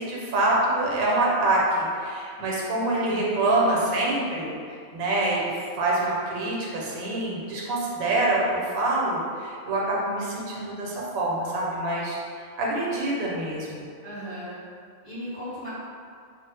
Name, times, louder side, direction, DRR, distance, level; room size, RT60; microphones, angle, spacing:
voice 1, 0.0-4.6 4.9-13.8, right 2 dB, 85° right, -4 dB, 1.0 m, -26 dB
voice 2, 14.0-14.6 15.0-15.7, equal, 25° left, -14 dB, 1.0 m, -36 dB
2.3 x 2.1 x 3.2 m, 2.2 s
omnidirectional pair, 1.4 m